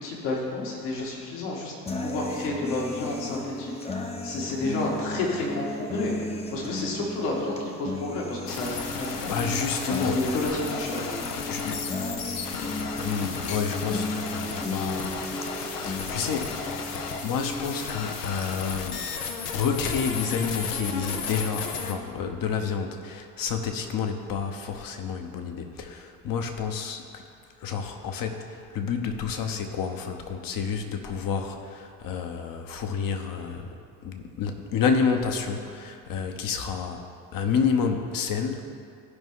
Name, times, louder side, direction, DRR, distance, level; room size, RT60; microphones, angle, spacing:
voice 1, 0.0-1.7 2.0-3.8 4.2-6.1 6.5-9.6 10.0-11.1, left 2 dB, 60° left, -2 dB, 2.0 m, -31 dB
sound 1, 1.9-17.9, left 2 dB, 15° left, 0.8 m, -34 dB
sound 2, 8.5-21.9, left 5 dB, 80° left, 0.9 m, -34 dB
voice 2, 9.2-10.2 11.5-11.9 13.0-15.2 15.7-16.6 17.2-19.1 19.5-27.0 27.6-33.7 34.0-37.0 37.3-38.6, left 6 dB, 45° left, 5 dB, 1.1 m, -29 dB
15.0 x 5.4 x 3.7 m, 2.4 s
figure-of-eight pair, 60°, 47 cm